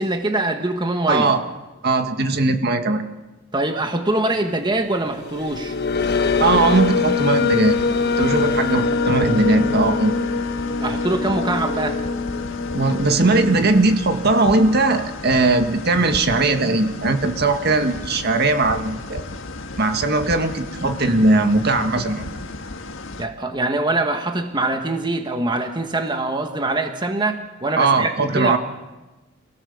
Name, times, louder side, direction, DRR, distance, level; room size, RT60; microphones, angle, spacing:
voice 1, 0.0-1.3 3.5-5.7 10.8-12.0 23.2-28.6, right 2 dB, 25° right, 5 dB, 1.5 m, -23 dB
voice 2, 1.1-1.4 1.8-3.0 6.4-7.8 8.2-10.1 12.7-19.2 19.8-22.3 27.8-28.6, right 2 dB, 55° right, 6 dB, 1.8 m, -19 dB
sound 1, 5.2-13.7, left 4 dB, 55° left, 1.5 m, -23 dB
sound 2, 6.0-23.3, left 2 dB, 75° left, 1.8 m, -35 dB
28.5 x 17.5 x 7.1 m, 1.1 s
head